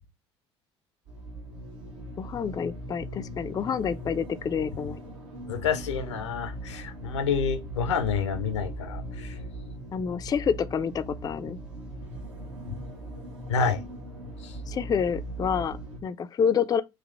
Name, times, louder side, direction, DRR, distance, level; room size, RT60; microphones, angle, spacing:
sound 1, 1.1-16.0, right 1 dB, 80° right, 1.4 m, -39 dB
voice 1, 2.2-5.0 9.9-11.6 14.7-16.8, left 7 dB, 25° left, 0.4 m, -28 dB
voice 2, 5.5-9.4 12.7-12.8 13.5-13.8 14.4-14.5, left 6 dB, 80° left, 0.6 m, -28 dB
3.8 x 3.0 x 3.3 m
figure-of-eight pair, 60°, 15 cm